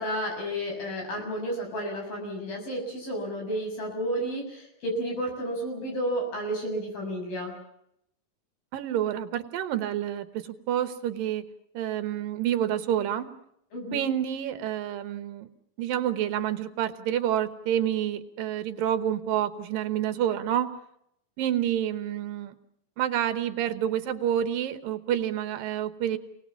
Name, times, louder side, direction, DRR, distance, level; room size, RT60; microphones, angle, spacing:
voice 1, 0.0-7.5 13.7-14.0, equal, 85° left, 2 dB, 8.4 m, -31 dB
voice 2, 8.7-11.4 11.7-13.3 13.9-15.5 15.8-20.7 21.4-22.6 23.0-26.2, right 10 dB, 75° right, 10 dB, 2.9 m, -28 dB
28.0 x 19.0 x 7.3 m, 0.77 s
omnidirectional pair, 4.0 m